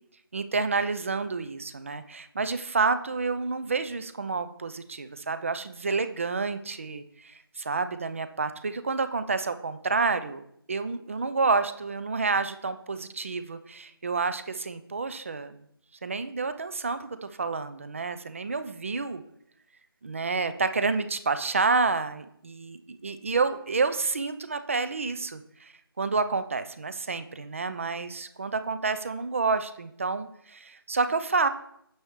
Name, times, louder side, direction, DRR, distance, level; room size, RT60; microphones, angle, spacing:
voice 1, 0.3-10.4 10.7-15.6 16.0-19.2 20.0-31.5, right 4 dB, 35° right, 11 dB, 0.4 m, -29 dB
9.2 x 7.0 x 3.1 m, 0.72 s
figure-of-eight pair, 160°, 13 cm